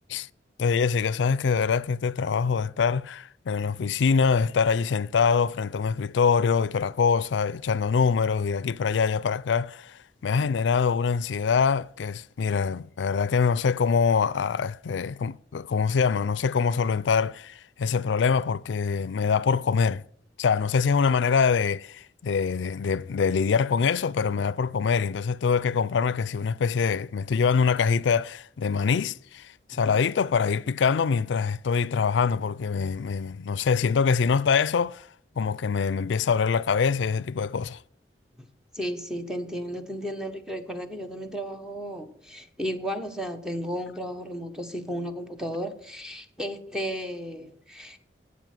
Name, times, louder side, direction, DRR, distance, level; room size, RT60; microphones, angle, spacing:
voice 1, 0.6-20.0 20.4-35.1 35.4-37.8, left 5 dB, 85° left, 0.4 m, -24 dB
voice 2, 38.7-48.0, equal, 5° right, 1.2 m, -34 dB
12.5 x 8.5 x 7.6 m
head